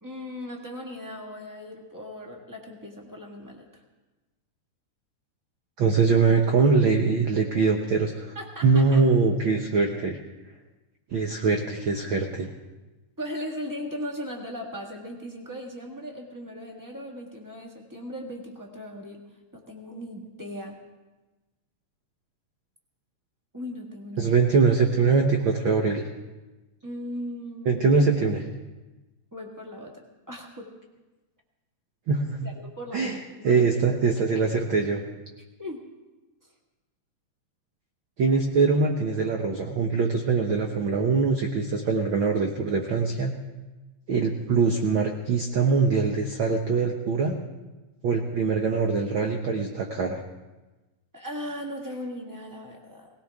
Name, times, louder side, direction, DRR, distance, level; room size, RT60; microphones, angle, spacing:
voice 1, 0.0-3.8 8.3-9.0 13.2-19.2 19.5-20.8 23.5-24.3 26.8-27.8 29.3-30.0 30.3-30.7 32.4-33.6 35.6-35.8 51.1-53.1, equal, 20° right, 0 dB, 0.5 m, -38 dB
voice 2, 5.8-8.3 8.6-10.2 11.1-12.5 24.2-26.1 27.6-28.5 32.1-32.5 32.9-33.2 33.4-35.0 38.2-43.3 44.1-47.4 48.0-50.2, right 4 dB, 70° right, 2 dB, 1.2 m, -23 dB
18.5 x 18.0 x 3.5 m, 1.2 s
omnidirectional pair, 3.5 m